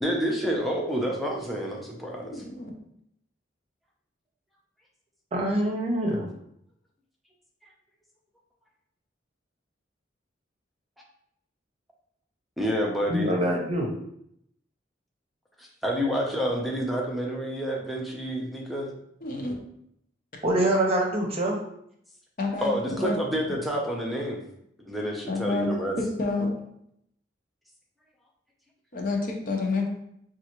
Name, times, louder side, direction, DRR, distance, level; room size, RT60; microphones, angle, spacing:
voice 1, 0.0-2.4 12.6-13.4 15.6-18.9 22.6-24.4 24.9-26.0, equal, ahead, -2 dB, 0.6 m, -28 dB
voice 2, 2.2-2.7 19.2-19.6 22.4-23.1 25.3-25.7 26.0-26.5 28.9-29.9, left 3 dB, 50° left, 1 dB, 0.7 m, -29 dB
voice 3, 5.3-6.3 13.1-13.9 20.4-21.6, right 1 dB, 35° right, 0 dB, 0.7 m, -25 dB
5.3 x 2.4 x 3.0 m, 0.74 s
head